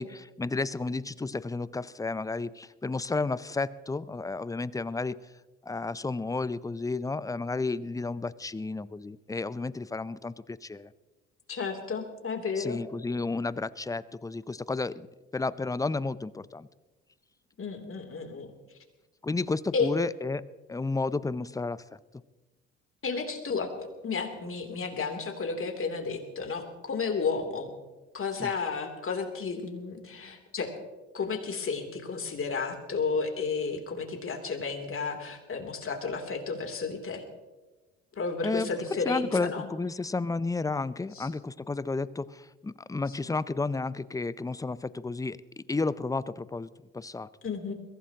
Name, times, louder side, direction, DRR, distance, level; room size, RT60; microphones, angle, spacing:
voice 1, 0.0-5.2 5.6-10.9 12.6-15.1 15.3-16.7 19.2-22.0 28.4-28.5 38.4-38.7 39.0-47.3, left 3 dB, 10° left, 18 dB, 0.6 m, -32 dB
voice 2, 11.5-12.8 17.6-18.5 19.7-19.9 23.0-27.7 28.1-30.7 31.1-37.2 38.1-39.7 41.1-41.3 47.4-47.7, left 4 dB, 40° left, 4 dB, 3.1 m, -32 dB
22.0 x 16.0 x 2.9 m, 1.2 s
hypercardioid pair, 55°, 35 cm